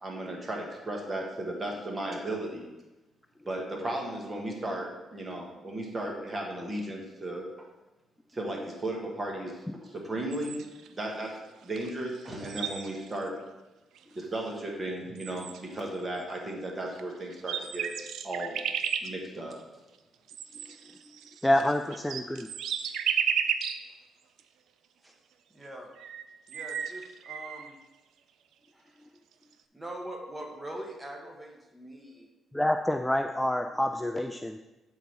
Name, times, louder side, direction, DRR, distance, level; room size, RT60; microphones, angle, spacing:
voice 1, 0.0-2.7 3.5-7.7 8.3-11.3 11.6-13.4 14.2-17.9 18.2-18.6 19.0-19.5, right 1 dB, 30° right, 0 dB, 1.7 m, -35 dB
sound 1, 10.3-10.9 11.8-11.9 12.1-13.2 14.0-14.1 14.8-14.9 15.2-15.8 16.9-17.0 17.3-19.1 20.3-23.8 24.4-24.5 25.6-25.7 26.0-27.7, right 8 dB, 80° right, 0.4 m, -33 dB
voice 2, 21.4-22.5 32.5-34.6, left 1 dB, 10° left, 6 dB, 0.3 m, -27 dB
voice 3, 25.5-25.9 26.5-27.8 28.7-29.0 29.7-32.3, right 1 dB, 10° right, 1 dB, 1.4 m, -42 dB
8.1 x 3.9 x 4.6 m, 1.1 s
cardioid pair, 85°, 0 cm